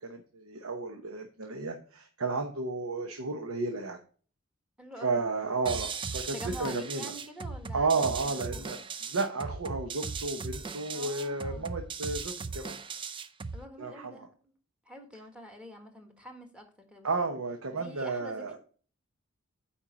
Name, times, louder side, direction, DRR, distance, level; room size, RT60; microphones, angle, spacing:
voice 1, 0.0-4.0 5.0-7.1 7.7-8.8 9.1-12.8 13.8-14.3 17.0-18.6, right 3 dB, 75° right, 1.0 m, -32 dB
voice 2, 4.8-5.2 6.3-8.7 10.9-11.7 13.5-14.5 14.8-17.3 17.7-18.6, equal, 5° right, 1.4 m, -46 dB
sound 1, 5.7-13.7, right 5 dB, 25° right, 0.4 m, -38 dB
8.8 x 4.5 x 5.1 m
head